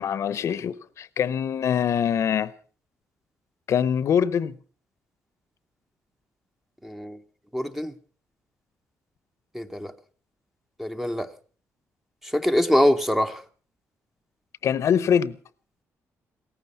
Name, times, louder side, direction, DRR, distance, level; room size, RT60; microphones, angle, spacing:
voice 1, 0.0-2.5 3.7-4.5 14.6-15.4, left 8 dB, 60° left, 0.8 m, -23 dB
voice 2, 6.8-7.2 7.5-7.9 9.5-9.9 10.8-11.3 12.3-13.4, equal, 5° right, 0.8 m, -23 dB
17.5 x 15.0 x 5.5 m
cardioid pair, 130°, 6 cm